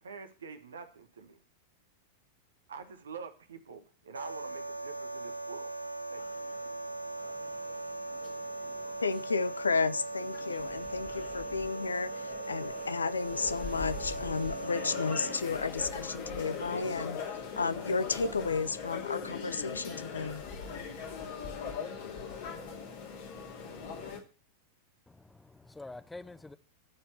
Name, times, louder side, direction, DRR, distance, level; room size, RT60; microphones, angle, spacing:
voice 1, 0.0-1.4 2.7-5.7 6.1-6.2, right 5 dB, 70° right, 1.3 m, -46 dB
sound 1, 4.1-15.3, right 2 dB, 85° right, 0.8 m, -39 dB
sound 2, 6.2-24.2, left 5 dB, 55° left, 2.4 m, -41 dB
voice 2, 9.0-12.1 12.5-17.2 17.6-20.4, left 4 dB, 75° left, 0.6 m, -32 dB
voice 3, 25.1-26.6, left 2 dB, 5° left, 0.8 m, -47 dB
13.0 x 4.6 x 7.5 m
figure-of-eight pair, 90°, 0 cm